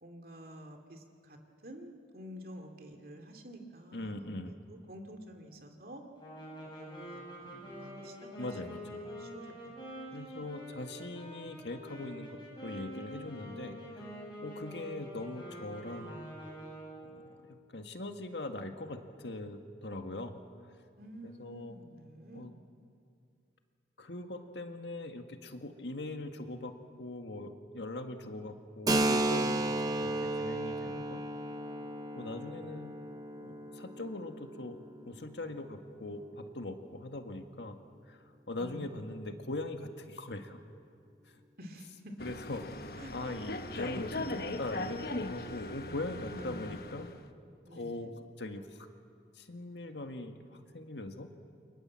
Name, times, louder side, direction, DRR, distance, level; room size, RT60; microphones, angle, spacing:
voice 1, 0.0-1.4 1.6-6.0 6.6-8.5 8.9-9.8 10.1-10.5 21.0-22.6 38.5-39.0 41.6-42.1 43.0-43.1 43.7-44.9 46.3-46.9 47.6-48.1, equal, 55° right, 4 dB, 2.8 m, -49 dB
voice 2, 3.9-4.5 8.4-9.1 10.1-14.1 14.4-16.2 17.0-20.4 21.2-21.8 22.3-22.5 24.0-26.7 27.0-31.2 32.1-32.9 33.4-34.8 35.1-37.8 38.1-40.6 41.3-41.4 42.2-47.1 47.7-48.1 48.4-48.9 49.3-51.3, left 2 dB, 75° left, 5 dB, 1.9 m, -41 dB
sound 1, 6.2-17.1, equal, 25° left, 7.7 m, -46 dB
Keyboard (musical), 28.9-36.2, right 2 dB, 20° right, 0.9 m, -34 dB
sound 2, 42.2-47.2, left 2 dB, 55° left, 1.1 m, -39 dB
29.5 x 24.0 x 7.6 m, 2.4 s
head